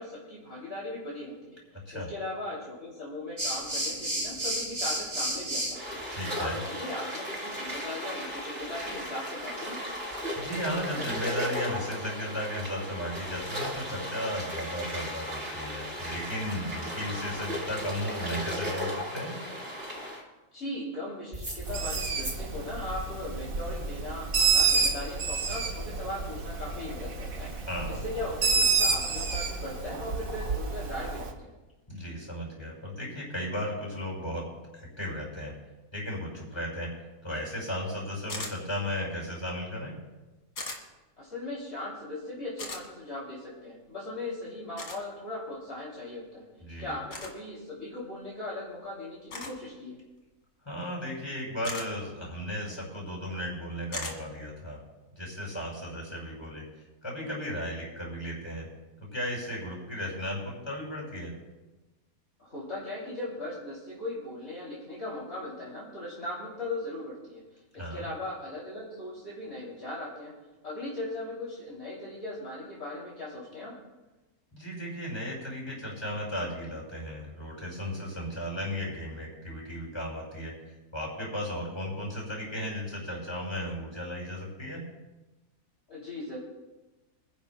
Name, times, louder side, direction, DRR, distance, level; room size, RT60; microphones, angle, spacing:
voice 1, 0.0-6.0 6.4-9.8 20.5-27.5 28.0-31.5 41.2-46.4 46.8-50.0 62.4-67.4 67.9-70.3 70.6-73.7 85.9-86.4, left 1 dB, 45° left, -6 dB, 3.5 m, -38 dB
sound 1, 3.4-20.2 21.3-22.3, equal, 40° right, 4.6 m, -35 dB
voice 2, 6.1-6.6 10.4-19.4 27.7-28.0 31.9-35.5 35.9-36.9 37.2-39.9 46.6-47.0 50.7-54.8 55.2-58.7 59.1-61.3 67.8-68.1 74.5-80.5 80.9-84.8, equal, 15° left, -3 dB, 5.7 m, -35 dB
Bird, 21.6-31.3, right 4 dB, 65° right, 1.7 m, -29 dB
sound 2, 38.3-38.6 40.6-40.8 42.6-42.8 44.8-45.0 47.1-47.3 49.3-49.6 51.6-51.9 53.9-54.2, left 3 dB, 70° left, 2.4 m, -37 dB
26.5 x 10.5 x 2.3 m, 1.1 s
omnidirectional pair, 1.6 m